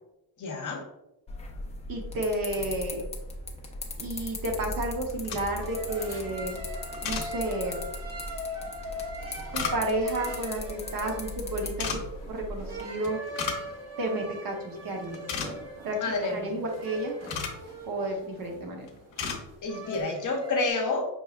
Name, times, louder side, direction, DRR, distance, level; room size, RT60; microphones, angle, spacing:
voice 1, 0.4-0.8 16.0-16.5 19.6-21.1, left 3 dB, 40° left, 1 dB, 0.7 m, -29 dB
sound 1, 1.3-12.8, left 2 dB, 15° left, 0.3 m, -39 dB
voice 2, 1.9-3.0 4.0-6.5 7.0-7.8 9.5-12.0 12.3-13.2 14.0-15.2 15.8-17.1 17.8-18.9, right 1 dB, 50° right, 2 dB, 0.8 m, -31 dB
sound 2, 4.9-20.7, equal, 35° right, 1.2 m, -41 dB
sound 3, 5.1-5.7 6.9-7.3 9.0-10.1 11.6-12.0 13.0-13.7 14.0-14.1 14.6-14.8 15.0-15.8 16.7-17.6 18.4-18.6 18.9-19.4 19.8-20.0, left 6 dB, 75° left, 0.8 m, -34 dB
5.3 x 3.1 x 2.3 m, 0.90 s
cardioid pair, 170°, 46 cm